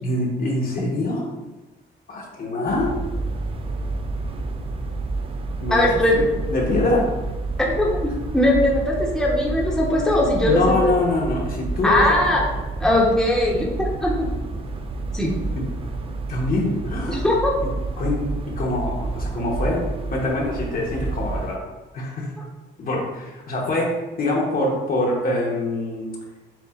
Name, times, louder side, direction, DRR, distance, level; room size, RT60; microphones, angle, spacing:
voice 1, 0.0-1.3 2.1-3.0 5.6-6.2 6.5-7.1 8.1-8.2 10.4-12.6 15.5-15.7 16.3-17.3 18.0-21.7 21.9-22.4 22.8-26.1, left 2 dB, 45° left, -2 dB, 1.1 m, -24 dB
sound 1, 2.7-21.6, right 3 dB, 30° right, 0.4 m, -29 dB
voice 2, 5.7-6.2 7.6-10.6 11.8-12.4 12.8-14.3 15.1-15.3 17.1-17.5, left 1 dB, ahead, -4 dB, 0.9 m, -20 dB
7.1 x 2.4 x 2.4 m, 1.1 s
cardioid pair, 90°, 20 cm